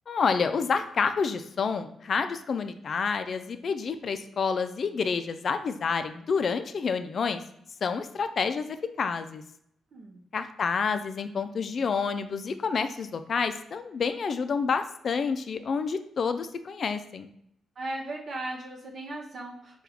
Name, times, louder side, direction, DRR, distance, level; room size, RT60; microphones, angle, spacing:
voice 1, 0.1-7.4 7.8-9.4 10.3-17.3, left 5 dB, 50° left, 9 dB, 0.3 m, -29 dB
voice 2, 17.8-19.8, right 2 dB, 55° right, 0 dB, 0.6 m, -37 dB
4.6 x 2.3 x 3.4 m, 0.72 s
cardioid pair, 115°, 0 cm